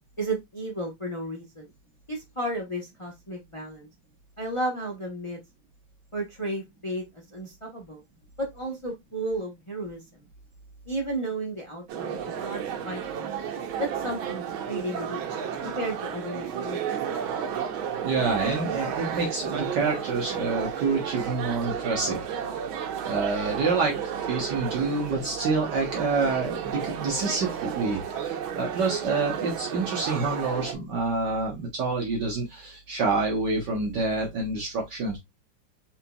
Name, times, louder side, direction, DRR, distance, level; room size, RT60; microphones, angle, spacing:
voice 1, 0.2-1.7 2.1-3.9 4.4-5.4 6.1-7.0 7.3-8.0 8.5-10.0 10.9-13.4 13.8-15.2 15.6-16.8, right 1 dB, 55° left, 0.3 m, -33 dB
sound 1, 11.9-30.7, right 8 dB, 80° right, 1.5 m, -32 dB
voice 2, 18.0-22.2 23.0-35.2, right 3 dB, 65° right, 1.4 m, -27 dB
4.3 x 3.8 x 2.2 m
omnidirectional pair, 2.2 m